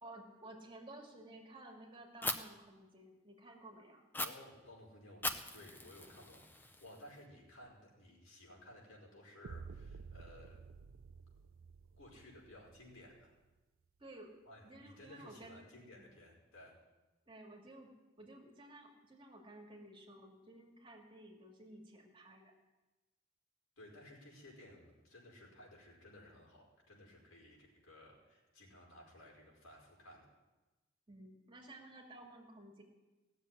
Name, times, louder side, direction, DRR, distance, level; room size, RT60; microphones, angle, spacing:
voice 1, 0.0-4.0 14.0-14.3 14.6-15.7 15.9-16.1 17.3-17.9 18.2-22.5 31.1-32.8, right 1 dB, 25° right, 0 dB, 2.4 m, -54 dB
Fire, 2.2-2.3 4.1-4.3 5.2-7.2, left 2 dB, 10° left, 0.7 m, -40 dB
voice 2, 4.2-5.2 5.5-10.6 12.0-13.3 14.5-16.7 23.8-30.3, left 1 dB, 85° left, -2 dB, 5.2 m, -57 dB
sound 1, 9.4-13.4, right 5 dB, 80° right, 0.5 m, -52 dB
17.5 x 7.3 x 9.9 m, 1.1 s
head